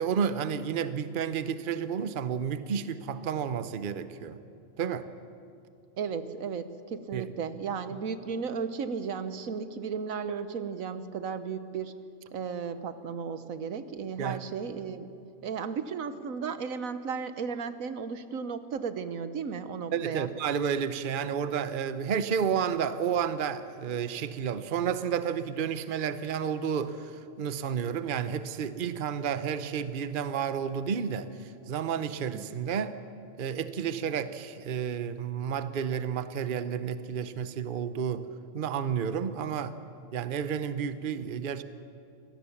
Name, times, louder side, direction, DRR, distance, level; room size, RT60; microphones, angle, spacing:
voice 1, 0.0-4.4 4.8-5.1 7.1-7.3 14.2-14.4 19.9-33.0 33.4-38.3 38.5-39.8 40.1-41.6, right 7 dB, 45° right, 12 dB, 0.9 m, -31 dB
voice 2, 6.0-12.0 12.3-15.1 15.4-20.3 32.3-32.6, right 6 dB, 80° right, 11 dB, 1.4 m, -35 dB
25.0 x 17.5 x 7.2 m, 2.5 s
omnidirectional pair, 1.4 m